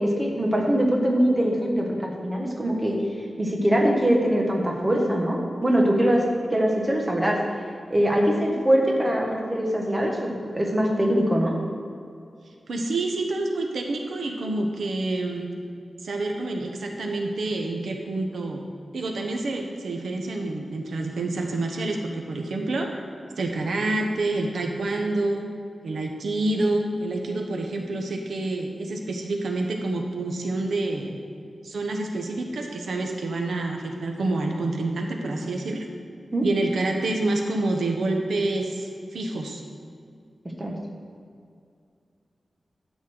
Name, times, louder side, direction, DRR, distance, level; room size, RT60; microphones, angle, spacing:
voice 1, 0.0-3.0 3.4-6.2 6.5-7.4 7.9-11.5 36.3-36.5 40.6-40.7, equal, 15° right, -1 dB, 1.5 m, -22 dB
voice 2, 12.7-15.5 16.0-18.7 18.9-22.9 23.4-25.5 25.8-31.2 31.6-35.8 36.4-39.6, right 2 dB, 90° right, 2 dB, 1.1 m, -27 dB
12.5 x 4.3 x 7.8 m, 2.4 s
wide cardioid pair, 135°, 0 cm